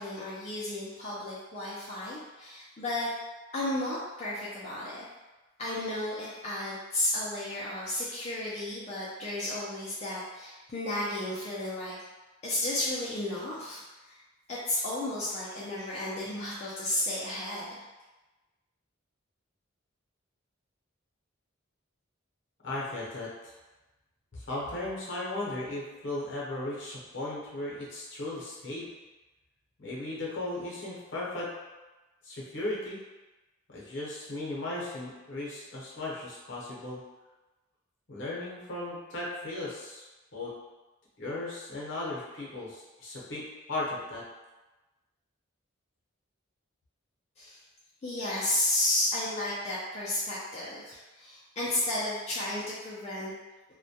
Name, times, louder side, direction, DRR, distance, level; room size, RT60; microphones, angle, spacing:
voice 1, 0.0-3.1 3.5-5.1 5.6-12.0 12.4-14.2 14.5-17.8 47.4-47.6 48.0-53.3, left 1 dB, 30° left, -8 dB, 0.3 m, -33 dB
voice 2, 22.6-23.5 24.3-28.9 29.8-31.5 32.2-33.0 33.7-37.0 38.1-40.0 40.3-40.5 41.2-44.2, left 2 dB, 60° left, -5 dB, 0.7 m, -36 dB
2.2 x 2.1 x 2.7 m, 1.1 s
head